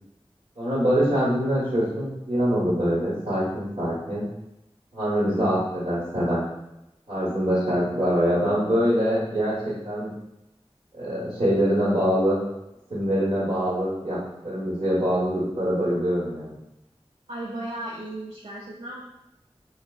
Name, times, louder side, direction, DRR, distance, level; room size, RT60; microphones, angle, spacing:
voice 1, 0.6-4.2 4.9-6.4 7.1-10.1 10.9-12.4 12.9-14.2 14.4-16.5, equal, 70° right, -12 dB, 1.2 m, -24 dB
voice 2, 17.3-19.0, right 1 dB, 85° right, -5 dB, 0.4 m, -35 dB
3.2 x 2.1 x 2.3 m, 0.89 s
wide cardioid pair, 45°, 11 cm